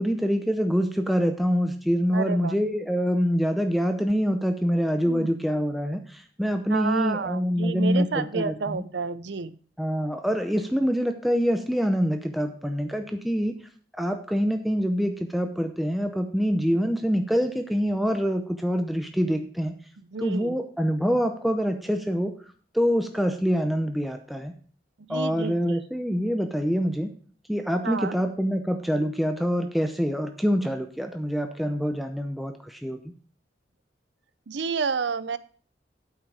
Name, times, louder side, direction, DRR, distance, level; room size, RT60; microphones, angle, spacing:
voice 1, 0.0-8.8 9.8-13.5 14.0-19.7 20.2-22.3 22.7-24.5 25.1-27.1 27.5-33.1, equal, ahead, 5 dB, 0.7 m, -25 dB
voice 2, 2.1-2.6 5.0-5.4 6.7-9.6 20.1-20.6 25.1-25.8 27.8-28.2 34.5-35.4, right 5 dB, 70° right, 15 dB, 0.6 m, -30 dB
9.1 x 7.4 x 4.8 m, 0.43 s
head